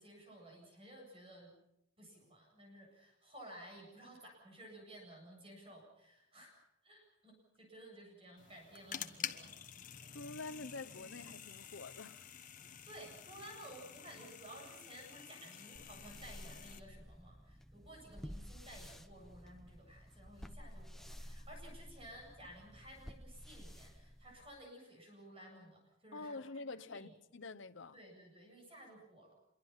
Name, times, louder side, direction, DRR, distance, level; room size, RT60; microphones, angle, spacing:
voice 1, 0.0-1.6 2.0-9.5 12.8-27.1 27.9-29.3, right 1 dB, 30° right, 8.0 m, -55 dB
sound 1, 8.4-16.8, left 8 dB, 40° left, 1.3 m, -49 dB
voice 2, 10.1-12.3 26.1-28.0, left 3 dB, 70° left, 1.0 m, -47 dB
sound 2, 15.7-24.7, equal, ahead, 0.9 m, -52 dB
26.5 x 23.5 x 5.8 m
head